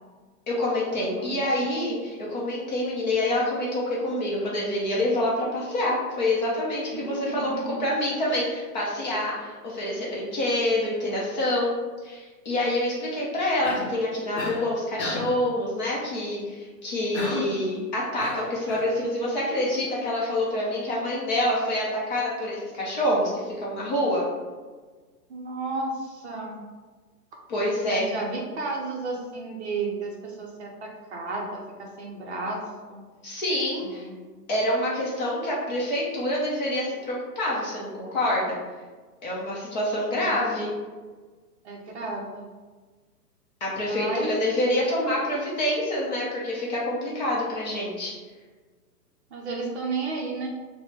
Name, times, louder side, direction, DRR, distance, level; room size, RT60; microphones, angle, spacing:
voice 1, 0.5-7.5 7.8-11.7 12.0-24.2 27.5-28.1 33.2-34.1 34.5-38.6 39.2-40.7 43.6-48.1, left 1 dB, 30° left, -5 dB, 0.6 m, -27 dB
voice 2, 1.0-1.4 6.9-7.8 17.4-17.8 25.3-26.6 27.9-32.6 32.9-33.0 33.8-34.1 40.1-40.4 41.6-42.5 43.8-44.3 49.3-50.5, right 3 dB, 45° right, -1 dB, 0.6 m, -33 dB
Cough, 13.6-14.0 14.4-14.7 15.0-15.4 17.1-17.6 18.2-18.9, left 2 dB, 45° left, 1.0 m, -32 dB
3.5 x 2.2 x 2.9 m, 1.4 s
hypercardioid pair, 145°, 48 cm